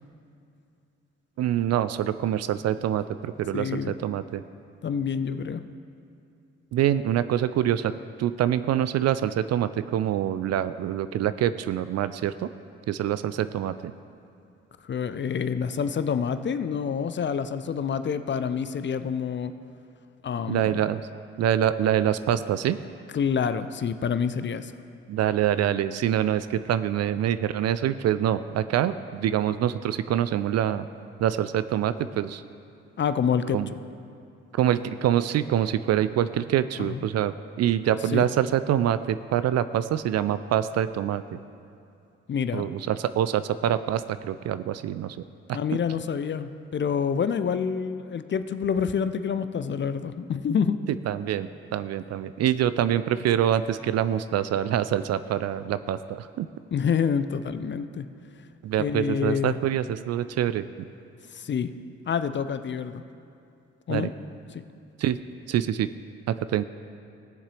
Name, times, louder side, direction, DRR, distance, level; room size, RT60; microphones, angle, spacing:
voice 1, 1.4-4.4 6.7-7.9 8.2-12.5 12.9-13.7 20.5-21.0 21.4-22.8 25.1-30.9 31.2-32.4 33.5-33.7 34.5-41.4 42.5-45.2 45.5-45.6 51.1-56.5 58.6-60.6 63.9-64.1 65.0-65.2 65.5-65.9 66.3-66.6, right 11 dB, 50° right, 14 dB, 0.4 m, -25 dB
voice 2, 3.5-4.0 4.8-5.7 14.8-19.5 20.2-20.9 23.1-24.7 33.0-33.6 36.8-37.1 38.1-38.3 42.3-42.7 45.5-50.8 56.7-58.0 58.8-59.6 61.3-61.7 62.1-63.0 63.9-64.1 64.5-64.6, left 7 dB, 35° left, 12 dB, 0.5 m, -27 dB
16.5 x 7.3 x 3.3 m, 2.6 s
hypercardioid pair, 40°, 34 cm